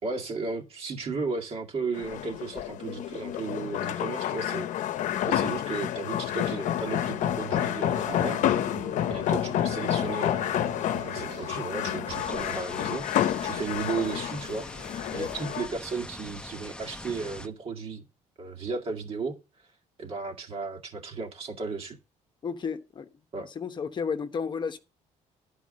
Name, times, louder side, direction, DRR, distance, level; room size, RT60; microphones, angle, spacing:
voice 1, 0.0-4.7 5.2-8.8 9.1-18.0 18.4-19.4 20.0-22.0 23.3-23.5, right 4 dB, 45° right, 2.0 m, -35 dB
sound 1, 1.9-15.7, left 11 dB, 70° left, 0.8 m, -29 dB
sound 2, 6.8-12.3, right 10 dB, 75° right, 0.9 m, -44 dB
sound 3, 12.1-17.5, left 1 dB, 5° left, 0.7 m, -42 dB
voice 2, 22.4-23.1 23.4-24.8, left 6 dB, 35° left, 0.9 m, -32 dB
11.0 x 4.8 x 6.3 m
cardioid pair, 120°, 13 cm